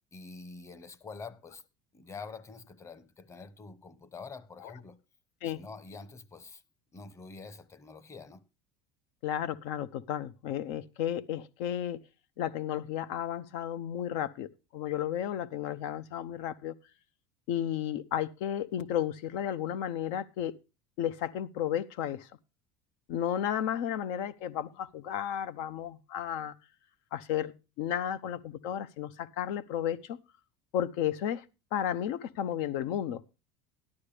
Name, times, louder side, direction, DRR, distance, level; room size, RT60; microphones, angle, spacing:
voice 1, 0.1-1.6 1.9-5.0 5.4-6.6 6.9-8.5, left 4 dB, 20° left, 1.0 m, -46 dB
voice 2, 9.2-12.0 12.4-16.7 17.5-20.5 21.0-22.3 23.1-26.5 27.1-30.2 30.7-31.4 31.7-33.2, left 10 dB, 75° left, 0.7 m, -33 dB
13.5 x 11.5 x 3.3 m
supercardioid pair, 115°, 13 cm